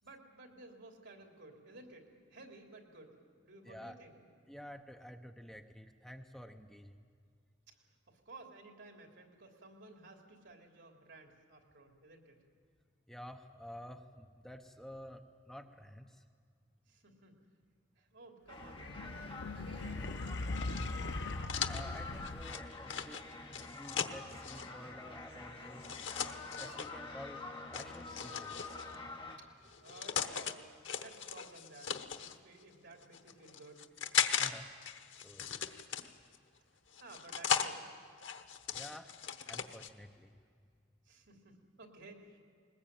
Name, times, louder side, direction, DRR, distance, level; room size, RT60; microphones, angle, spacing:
voice 1, 0.0-3.1 3.4-4.1 7.7-7.8 8.1-12.4 16.9-17.4 18.0-19.2 19.6-20.7 29.4-29.5 29.8-30.7 31.0-33.9 37.0-37.8 41.0-42.4, right 2 dB, 75° right, 3 dB, 3.1 m, -55 dB
voice 2, 3.6-4.0 4.5-7.0 13.1-16.2 21.7-23.2 23.5-25.8 26.6-27.4 27.7-28.8 34.4-34.7 35.2-35.7 38.7-39.1 39.5-40.4, equal, 5° left, 5 dB, 0.8 m, -51 dB
sound 1, 18.5-29.4, left 3 dB, 25° left, 2.2 m, -47 dB
sound 2, 18.6-22.8, left 2 dB, 65° left, 0.8 m, -40 dB
sound 3, 20.5-24.7 25.8-26.9 27.7-29.0 29.7-30.5 30.8-32.4 33.0-34.5 34.8-36.4 36.9-37.7 38.2-39.9, left 8 dB, 90° left, 1.1 m, -37 dB
20.5 x 20.0 x 8.8 m, 2.2 s
head